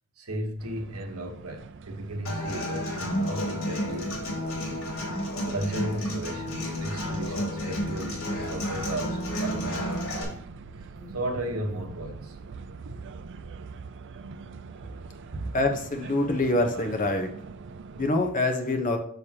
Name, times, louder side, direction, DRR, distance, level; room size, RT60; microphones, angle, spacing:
voice 1, 0.2-4.8 5.5-10.4 10.8-12.4 14.8-14.9 15.3-15.5, right 1 dB, 70° right, 1.2 m, -35 dB
sound 1, 0.6-18.1, right 5 dB, 55° right, 0.4 m, -44 dB
Human voice / Acoustic guitar, 2.2-10.2, equal, 65° left, 2.8 m, -31 dB
Alarm, 7.2-12.1, left 2 dB, 15° left, 2.1 m, -53 dB
voice 2, 15.5-17.3 18.0-19.0, left 2 dB, 35° left, 1.1 m, -25 dB
6.9 x 6.5 x 2.9 m
head